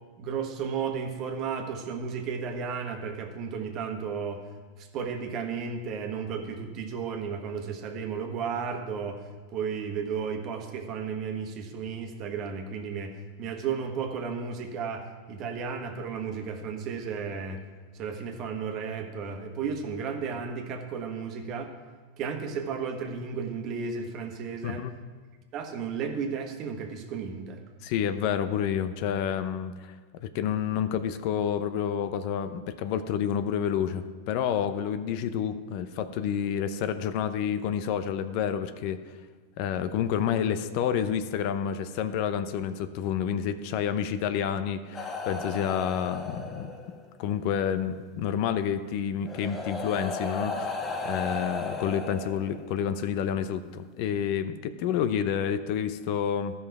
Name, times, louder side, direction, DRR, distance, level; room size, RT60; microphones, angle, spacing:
voice 1, 0.2-4.4 4.8-9.2 9.5-17.6 17.9-21.7 22.2-24.9 25.5-27.6, right 6 dB, 45° right, 4 dB, 1.3 m, -33 dB
voice 2, 27.8-29.9 30.2-39.0 39.6-46.7 47.2-50.8 51.0-56.5, left 8 dB, 55° left, 11 dB, 0.6 m, -29 dB
sound 1, 44.9-47.1 48.4-48.5 49.2-52.9 53.9-54.1, left 3 dB, 20° left, 1.1 m, -35 dB
13.0 x 5.5 x 4.8 m, 1.4 s
hypercardioid pair, 110°, 0 cm